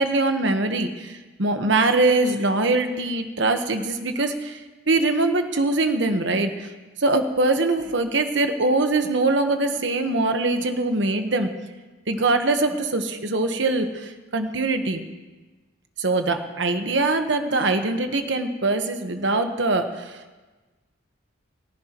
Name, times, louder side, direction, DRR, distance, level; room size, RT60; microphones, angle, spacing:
voice 1, 0.0-6.7 7.0-11.5 12.1-15.0 16.0-20.4, right 2 dB, 60° right, 6 dB, 1.2 m, -23 dB
22.0 x 15.0 x 3.0 m, 1.2 s
head